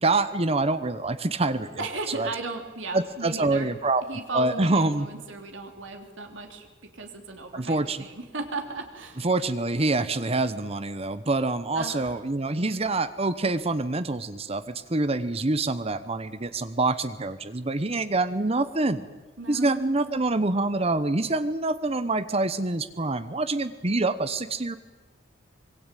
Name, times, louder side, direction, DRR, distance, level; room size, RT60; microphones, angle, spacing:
voice 1, 0.0-1.8 2.1-2.3 2.9-4.0 4.3-5.1 7.5-8.0 9.2-19.0 19.5-24.8, right 2 dB, 30° right, 13 dB, 0.9 m, -26 dB
voice 2, 1.8-3.7 4.1-6.7 6.9-9.2 11.7-12.1 19.4-20.3, right 3 dB, 75° right, 4 dB, 3.4 m, -36 dB
25.0 x 23.0 x 9.1 m, 1.3 s
head